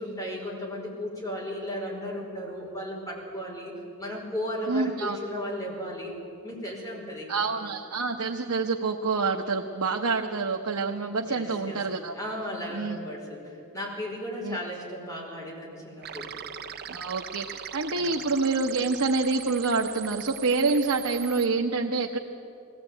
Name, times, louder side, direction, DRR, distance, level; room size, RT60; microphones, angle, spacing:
voice 1, 0.0-3.7 4.0-6.1 6.4-7.5 11.2-11.8 12.1-16.3 17.9-18.1, equal, 15° left, -3 dB, 5.2 m, -35 dB
voice 2, 4.7-5.2 7.3-12.1 12.7-13.0 14.4-14.6 16.9-22.2, right 4 dB, 90° right, 2 dB, 1.0 m, -27 dB
sound 1, 16.0-21.5, right 9 dB, 45° right, 0.7 m, -40 dB
20.5 x 16.5 x 9.0 m, 2.7 s
head